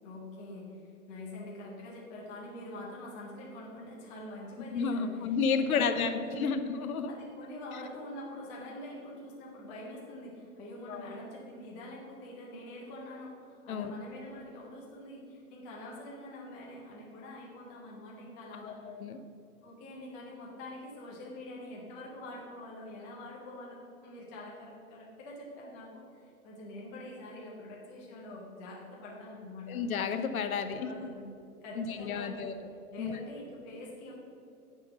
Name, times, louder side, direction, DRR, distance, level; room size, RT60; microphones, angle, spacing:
voice 1, 0.0-6.5 7.1-18.8 19.6-29.8 30.6-32.5 32.9-34.1, left 1 dB, 10° left, -4 dB, 0.3 m, -45 dB
voice 2, 4.7-7.1 10.9-11.1 13.7-13.9 18.6-19.2 29.7-30.9 31.8-32.5 33.0-33.1, left 5 dB, 70° left, 8 dB, 0.8 m, -31 dB
9.8 x 3.6 x 6.6 m, 2.6 s
hypercardioid pair, 130°, 44 cm